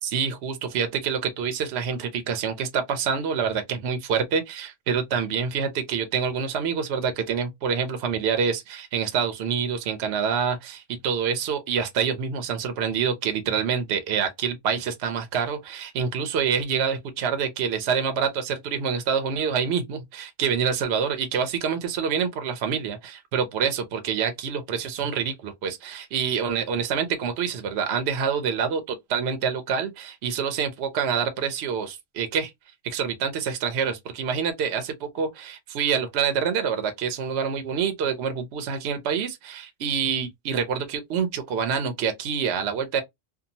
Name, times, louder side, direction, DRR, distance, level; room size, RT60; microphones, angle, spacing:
voice 1, 0.0-32.5 32.8-43.0, right 6 dB, 65° right, 0.8 m, -26 dB
2.7 x 2.3 x 2.7 m
omnidirectional pair, 1.3 m